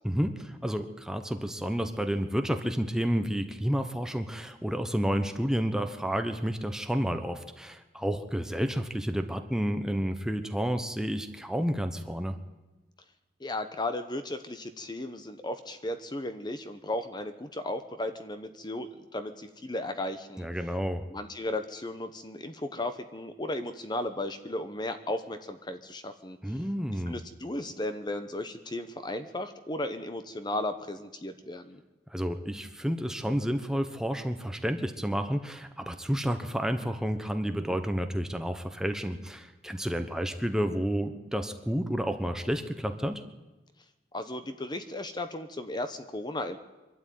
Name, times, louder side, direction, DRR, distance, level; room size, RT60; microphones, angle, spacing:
voice 1, 0.0-12.4 20.4-21.0 26.4-27.2 32.1-43.2, equal, 5° right, 7 dB, 1.1 m, -30 dB
voice 2, 13.4-20.5 21.1-26.6 27.1-31.8 44.1-46.6, left 1 dB, 25° left, 9 dB, 1.0 m, -35 dB
24.0 x 12.5 x 9.4 m, 1.1 s
head